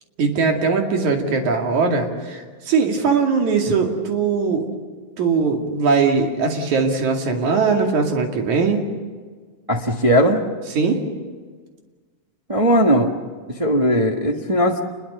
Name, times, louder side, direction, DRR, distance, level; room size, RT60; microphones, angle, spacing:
voice 1, 0.2-4.7 5.2-8.8 10.8-11.0, right 5 dB, 75° right, 2 dB, 3.8 m, -20 dB
voice 2, 9.7-10.4 12.5-13.1 13.5-14.8, equal, 30° right, 1 dB, 0.6 m, -18 dB
28.0 x 21.5 x 6.8 m, 1.5 s
omnidirectional pair, 3.4 m